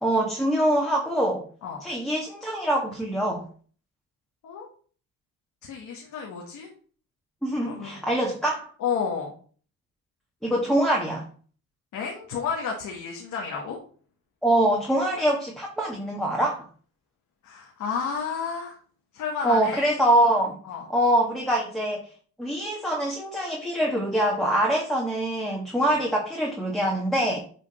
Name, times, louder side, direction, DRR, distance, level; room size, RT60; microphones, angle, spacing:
voice 1, 0.0-1.4 1.8-3.4 7.4-8.7 10.4-11.3 14.4-16.6 19.4-20.5 20.9-22.0 22.4-27.4, right 1 dB, ahead, -2 dB, 1.6 m, -24 dB
voice 2, 5.6-6.7 7.7-8.0 8.8-9.3 11.9-13.8 17.4-18.8 19.1-19.8 20.6-20.9, left 6 dB, 80° left, 0 dB, 1.5 m, -31 dB
8.4 x 3.5 x 4.3 m, 0.44 s
cardioid pair, 90°, 30 cm